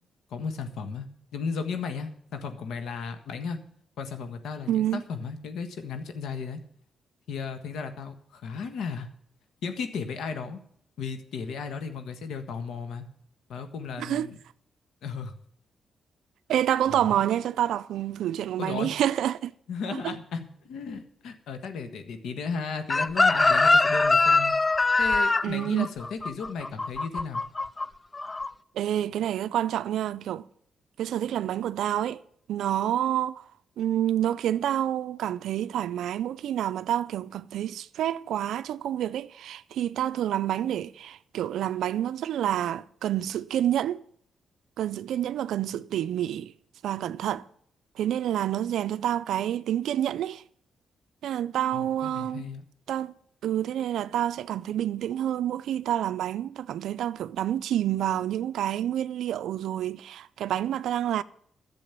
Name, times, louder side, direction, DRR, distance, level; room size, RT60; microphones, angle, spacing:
voice 1, 0.3-1.1 1.3-3.6 4.0-6.6 7.3-9.1 9.6-10.6 11.0-13.1 13.5-14.4 15.0-15.3 16.9-17.2 18.6-18.9 19.7-24.5 25.0-27.4 51.7-52.6, left 5 dB, 85° left, 1.5 m, -35 dB
voice 2, 4.7-5.0 14.0-14.3 16.5-19.5 19.9-20.2 25.4-25.9 28.7-30.4 31.0-32.2 32.5-33.4 33.8-44.0 44.8-46.5 46.8-47.4 48.0-50.4 51.2-52.5 52.9-53.1 53.4-61.2, right 11 dB, 85° right, 0.4 m, -28 dB
Chicken rooster, 22.9-27.8 28.1-28.5, left 3 dB, 25° left, 0.4 m, -22 dB
11.0 x 7.5 x 8.4 m
cardioid pair, 85°, 0 cm